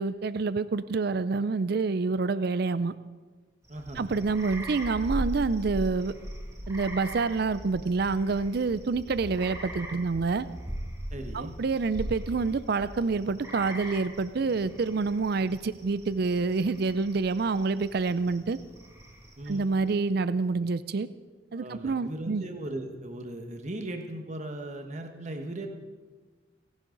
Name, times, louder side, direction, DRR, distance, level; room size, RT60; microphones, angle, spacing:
voice 1, 0.0-2.9 4.0-6.1 6.7-10.5 11.3-18.6 19.5-21.1 21.5-22.4, right 4 dB, 55° right, 14 dB, 0.4 m, -27 dB
sound 1, 3.6-19.9, equal, 15° right, 2.0 m, -40 dB
voice 2, 3.7-4.1 11.1-11.5 19.4-19.6 21.5-25.7, right 1 dB, 40° right, 4 dB, 1.3 m, -38 dB
29.5 x 11.5 x 3.9 m, 1.4 s
head